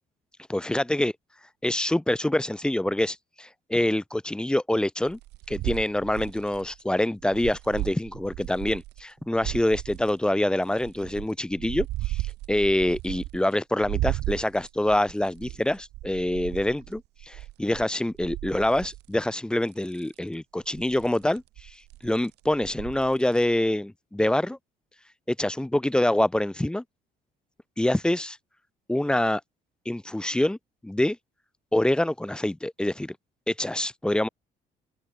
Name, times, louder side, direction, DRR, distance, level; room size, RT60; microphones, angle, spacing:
voice 1, 0.5-1.1 1.6-5.2 5.5-21.7 22.0-24.6 25.3-26.8 27.8-28.4 28.9-29.4 29.9-30.6 30.8-31.2 31.7-33.2 33.5-34.3, left 1 dB, 5° left, 0.6 m, -26 dB
sound 1, 5.1-9.0 9.3-10.1 10.7-13.5 13.8-19.3 19.7-20.2 20.7-23.4, right 17 dB, 80° right, 1.9 m, -35 dB
open air
cardioid pair, 110°, 17 cm